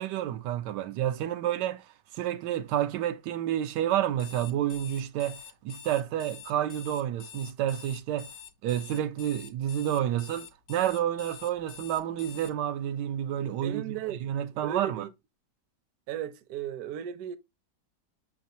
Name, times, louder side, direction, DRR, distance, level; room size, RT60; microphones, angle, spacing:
voice 1, 0.0-1.8 2.1-8.3 8.6-15.1, right 11 dB, 90° right, 1.2 m, -30 dB
Alarm, 4.1-12.5, left 11 dB, 70° left, 0.9 m, -47 dB
voice 2, 13.6-15.1 16.1-17.4, right 10 dB, 70° right, 1.0 m, -36 dB
5.9 x 3.4 x 2.7 m
omnidirectional pair, 1.8 m